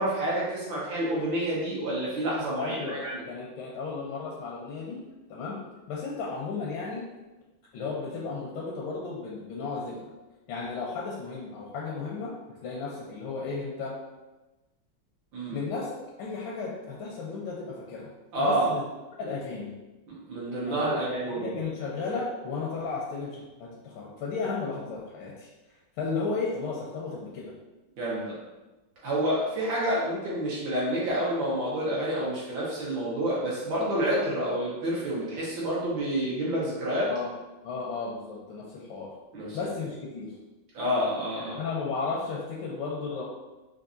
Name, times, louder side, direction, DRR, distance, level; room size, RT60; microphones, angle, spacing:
voice 1, 0.0-3.2 15.3-15.6 18.3-18.7 20.3-21.5 28.0-28.4 29.0-37.1 39.3-39.6 40.8-41.6, right 1 dB, 75° right, -6 dB, 1.8 m, -28 dB
voice 2, 2.6-3.0 3.3-5.0 5.3-5.6 5.9-7.0 7.7-10.0 10.5-12.4 12.6-14.0 15.5-18.1 18.4-18.8 19.2-19.7 20.7-25.5 26.0-27.5 37.1-37.3 37.6-39.1 39.5-40.3 41.4-43.2, left 4 dB, 80° left, -4 dB, 1.4 m, -34 dB
4.5 x 2.5 x 2.6 m, 1.1 s
omnidirectional pair, 2.2 m